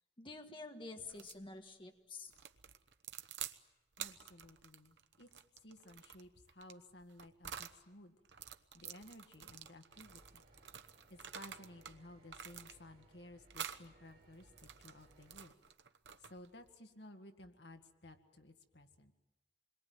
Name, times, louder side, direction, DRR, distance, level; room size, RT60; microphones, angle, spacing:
voice 1, 0.2-2.3, left 3 dB, 30° left, 4 dB, 1.6 m, -49 dB
sound 1, 1.1-1.4 2.3-3.6 3.9-7.8 8.3-12.0 12.3-13.0 13.5-13.9 14.4-16.5, right 9 dB, 80° right, 1.1 m, -49 dB
voice 2, 4.0-5.3 5.6-8.2 8.7-10.4 11.1-15.5 16.2-19.1, left 1 dB, 70° left, 6 dB, 1.9 m, -56 dB
sound 2, 9.9-15.4, right 1 dB, 55° right, 4.1 m, -65 dB
27.5 x 22.5 x 9.5 m, 1.0 s
head